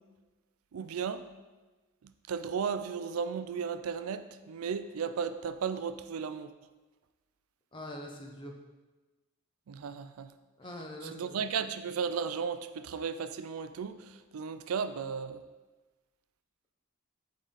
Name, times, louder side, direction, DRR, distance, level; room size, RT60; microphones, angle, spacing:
voice 1, 0.7-1.3 2.3-6.5 9.7-10.3 11.0-15.4, right 6 dB, 85° right, 11 dB, 0.4 m, -35 dB
voice 2, 7.7-8.6 10.6-11.4, left 1 dB, 25° left, 1 dB, 0.7 m, -43 dB
7.8 x 3.8 x 4.2 m, 1.2 s
head